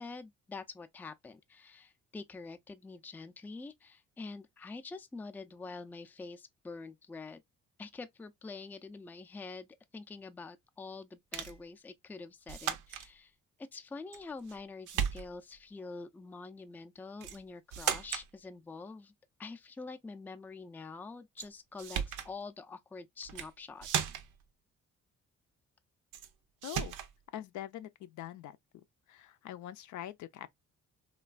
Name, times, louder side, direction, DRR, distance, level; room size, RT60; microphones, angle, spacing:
voice 1, 0.0-7.4 7.8-13.3 13.6-19.1 19.4-24.1, left 3 dB, 5° left, 0.3 m, -46 dB
sound 1, 11.3-11.6 12.5-13.1 14.1-14.6 14.9-15.6 17.2-17.4 17.7-18.3 21.4-21.5 21.8-22.3 23.2-23.5 23.8-24.4 26.1-26.3 26.6-27.1, right 9 dB, 90° right, 0.6 m, -36 dB
voice 2, 26.6-26.9 27.3-28.6 29.1-30.5, left 12 dB, 70° left, 0.5 m, -43 dB
3.2 x 2.3 x 2.3 m
cardioid pair, 90°, 30 cm